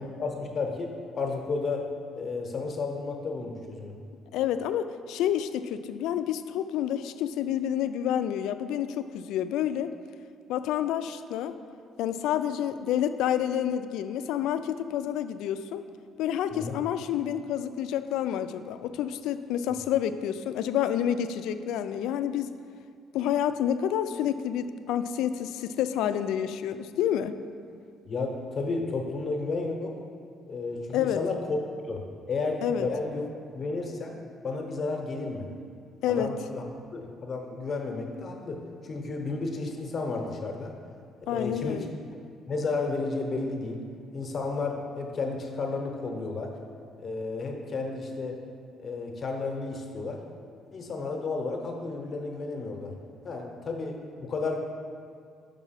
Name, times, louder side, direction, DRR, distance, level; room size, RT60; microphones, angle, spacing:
voice 1, 0.0-1.9 2.2-3.9 16.5-16.8 28.1-30.0 30.5-31.6 31.8-33.2 33.5-34.2 34.4-35.4 36.1-36.6 36.9-40.7 41.3-41.8 42.5-43.8 44.1-46.5 47.0-48.4 48.8-50.2 50.7-52.9 53.2-54.6, left 3 dB, 35° left, 2 dB, 0.8 m, -32 dB
voice 2, 4.3-9.9 10.5-11.5 12.0-15.8 16.2-22.5 23.1-27.3 30.9-31.2 32.6-32.9 36.0-36.3 41.3-41.9, left 10 dB, 85° left, 11 dB, 0.3 m, -29 dB
5.9 x 5.3 x 5.7 m, 2.2 s
cardioid pair, 160°, 0 cm